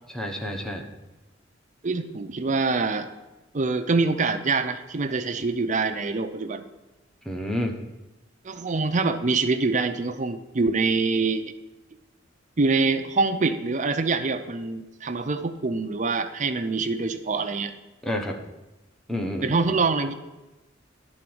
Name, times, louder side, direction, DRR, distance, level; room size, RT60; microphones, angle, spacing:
voice 1, 0.1-0.9 7.2-7.8 18.0-18.4 19.1-19.6, left 1 dB, 5° left, 1 dB, 1.0 m, -29 dB
voice 2, 1.8-3.1 3.5-6.6 8.4-11.4 12.6-17.7 19.4-20.1, right 3 dB, 40° right, 8 dB, 0.6 m, -25 dB
11.0 x 3.9 x 7.8 m, 1.1 s
head